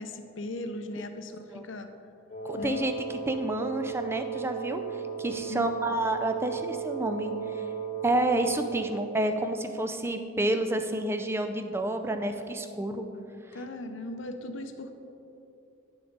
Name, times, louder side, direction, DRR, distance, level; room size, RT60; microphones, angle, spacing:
voice 1, 0.0-1.9 2.6-2.9 5.5-5.7 13.5-14.9, left 1 dB, 75° left, 7 dB, 0.7 m, -38 dB
Wind instrument woodwind instrument, 2.3-9.1, right 6 dB, 40° left, 0.8 m, -35 dB
voice 2, 2.4-2.9 3.3-4.8 5.2-7.6 8.0-13.1, right 1 dB, 10° right, 6 dB, 0.4 m, -29 dB
9.9 x 6.8 x 4.0 m, 2.8 s
head